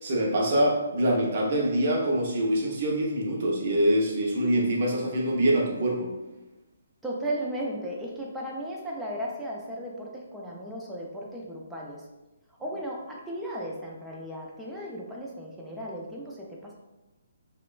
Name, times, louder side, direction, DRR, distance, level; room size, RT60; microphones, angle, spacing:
voice 1, 0.0-6.1, right 1 dB, 50° right, -1 dB, 0.6 m, -25 dB
voice 2, 7.0-12.1 12.6-16.7, right 1 dB, 5° right, -4 dB, 0.4 m, -35 dB
2.9 x 2.1 x 2.4 m, 1.1 s
hypercardioid pair, 145°, 0 cm